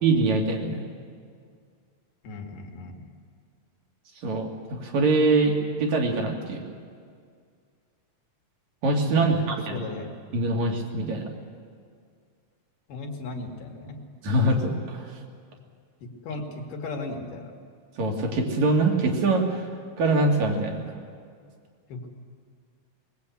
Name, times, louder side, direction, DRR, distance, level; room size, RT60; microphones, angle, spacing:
voice 1, 0.0-0.8 4.2-6.6 8.8-9.8 10.3-11.3 14.2-15.0 18.0-19.6 20.0-20.8, right 2 dB, 55° right, 2 dB, 3.4 m, -23 dB
voice 2, 2.2-3.0 9.1-10.1 12.9-14.0 16.0-17.5 21.9-22.1, left 3 dB, 70° left, 2 dB, 3.4 m, -37 dB
21.0 x 20.5 x 8.4 m, 2.1 s
omnidirectional pair, 4.0 m